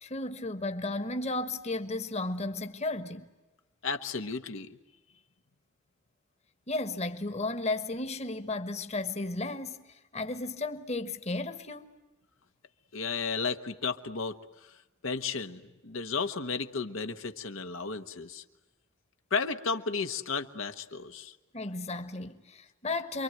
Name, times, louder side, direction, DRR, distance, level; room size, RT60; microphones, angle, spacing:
voice 1, 0.0-3.3 6.7-11.9 21.5-23.2, left 2 dB, 35° left, 1.4 m, -34 dB
voice 2, 3.8-4.8 12.9-14.4 15.0-18.4 19.3-21.3, left 5 dB, 80° left, 1.2 m, -33 dB
28.0 x 23.5 x 9.1 m
head